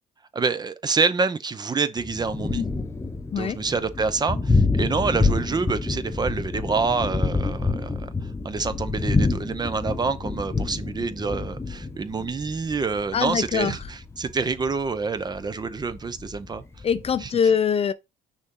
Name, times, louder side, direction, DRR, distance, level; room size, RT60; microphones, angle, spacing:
voice 1, 0.3-2.7 3.4-8.1 8.4-16.6 17.2-17.3, right 4 dB, 25° right, 0.6 m, -27 dB
Thunder, 2.0-17.3, left 3 dB, 15° left, 0.9 m, -28 dB
voice 2, 13.1-13.7 16.8-17.9, left 7 dB, 35° left, 0.5 m, -23 dB
6.2 x 4.1 x 3.8 m
cardioid pair, 110°, 17 cm